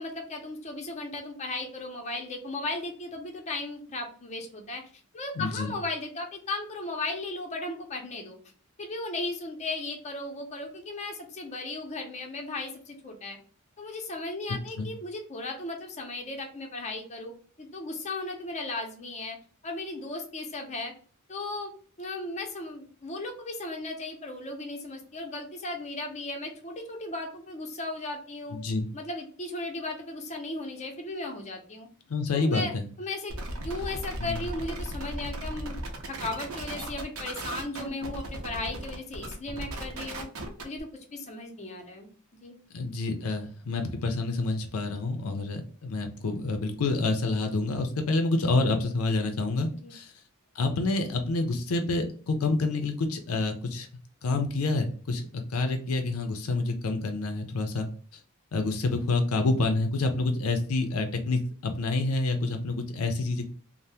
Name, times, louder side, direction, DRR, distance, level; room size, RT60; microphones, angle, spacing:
voice 1, 0.0-4.8 5.1-8.4 8.8-13.4 13.8-17.3 17.6-19.4 19.6-20.9 21.3-21.7 22.0-28.6 28.9-31.9 32.3-32.7 33.0-33.3 33.6-35.8 36.1-40.3 40.6-42.1 42.4-42.6 49.8-49.9, left 2 dB, 30° left, 2 dB, 0.6 m, -36 dB
voice 2, 5.4-5.7 14.8-14.9 28.5-28.9 32.1-32.9 34.2-34.4 42.7-50.1 50.5-53.9 54.2-57.9 58.5-63.5, left 3 dB, 80° left, 6 dB, 0.5 m, -28 dB
sound 1, 33.3-40.8, right 1 dB, 70° right, 0.7 m, -36 dB
2.7 x 2.1 x 3.3 m, 0.43 s
head